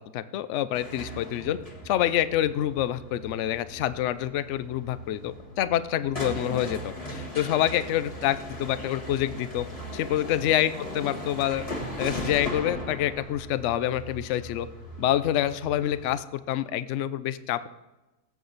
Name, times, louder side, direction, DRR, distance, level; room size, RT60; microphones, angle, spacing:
voice 1, 0.1-1.6 1.8-9.7 9.9-11.6 12.0-14.7 15.0-17.7, left 12 dB, 65° left, 14 dB, 0.8 m, -27 dB
sound 1, 0.7-16.1, equal, 25° left, 1.7 m, -38 dB
18.5 x 8.2 x 4.0 m, 1.0 s
omnidirectional pair, 1.6 m